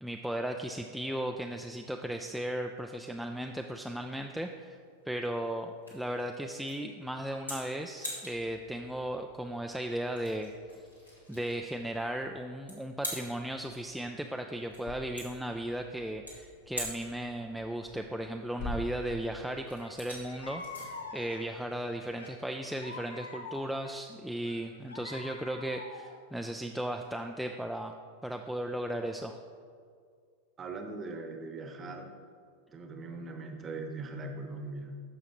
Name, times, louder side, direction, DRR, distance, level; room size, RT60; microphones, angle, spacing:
voice 1, 0.0-4.8 5.1-10.5 11.3-27.9 28.2-29.4, right 1 dB, ahead, 3 dB, 0.3 m, -36 dB
sound 1, 3.6-22.4, equal, 90° left, 2.2 m, -46 dB
sound 2, 10.1-21.8, left 1 dB, 50° left, 1.1 m, -50 dB
sound 3, 19.8-19.9 20.3-21.6 22.2-23.9 24.5-26.2, left 3 dB, 75° left, 0.8 m, -45 dB
voice 2, 30.6-32.1 32.7-35.0, right 3 dB, 25° right, 5 dB, 0.9 m, -40 dB
13.5 x 5.8 x 3.0 m, 2.2 s
figure-of-eight pair, 90°, 0 cm